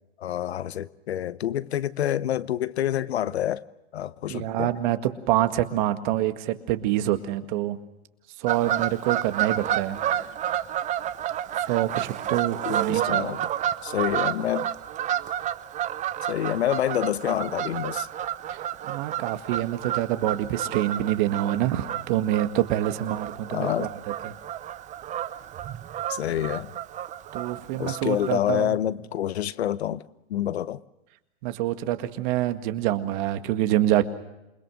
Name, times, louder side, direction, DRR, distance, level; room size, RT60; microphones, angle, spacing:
voice 1, 0.2-3.6 3.9-4.7 12.6-13.5 13.8-14.7 16.3-18.1 23.5-23.9 26.1-26.7 27.8-30.0 30.3-30.8, left 11 dB, 80° left, 1.0 m, -27 dB
voice 2, 4.3-7.8 8.4-10.0 11.6-13.3 18.5-24.3 27.3-28.7 31.4-34.0, right 13 dB, 50° right, 2.0 m, -26 dB
Fowl / Bird vocalization bird call bird song, 8.5-28.3, right 10 dB, 25° right, 0.9 m, -31 dB
28.0 x 21.0 x 6.4 m
hypercardioid pair, 130°, 32 cm